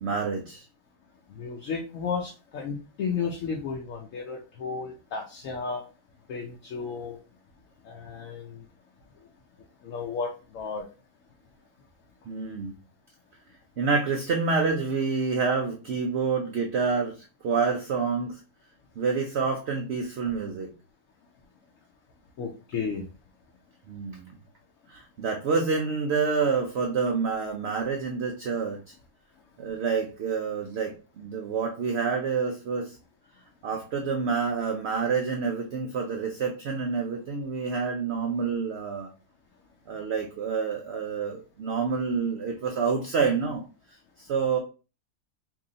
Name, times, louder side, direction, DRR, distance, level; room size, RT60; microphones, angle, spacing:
voice 1, 0.0-0.6 12.3-12.7 13.8-18.4 19.0-20.7 23.9-24.3 24.9-28.8 29.6-33.0 33.6-39.1 39.9-43.6 44.2-44.6, right 5 dB, 70° right, 2 dB, 0.6 m, -28 dB
voice 2, 1.3-5.8 6.3-7.2 7.8-8.6 9.8-10.8 22.4-23.0, left 5 dB, 65° left, 1 dB, 0.9 m, -33 dB
2.9 x 2.7 x 3.8 m, 0.33 s
omnidirectional pair, 1.7 m